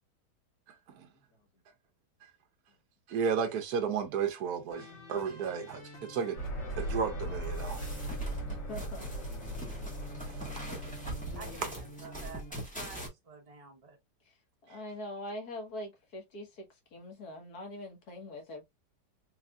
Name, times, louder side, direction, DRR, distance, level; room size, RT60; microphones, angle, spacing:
voice 1, 3.1-6.4 6.8-7.8 10.4-10.5, right 6 dB, 65° right, 1.2 m, -33 dB
sound 1, 4.7-12.5, left 1 dB, 45° left, 1.5 m, -49 dB
sound 2, 6.4-11.5, right 1 dB, 80° left, 2.2 m, -38 dB
sound 3, 7.4-13.1, right 1 dB, 5° left, 1.5 m, -42 dB
voice 2, 8.5-9.4 14.3-14.4 14.6-16.7 16.9-18.6, left 1 dB, 65° left, 1.8 m, -43 dB
voice 3, 11.3-14.0, right 4 dB, 25° right, 1.2 m, -50 dB
4.5 x 3.2 x 2.4 m
omnidirectional pair, 1.8 m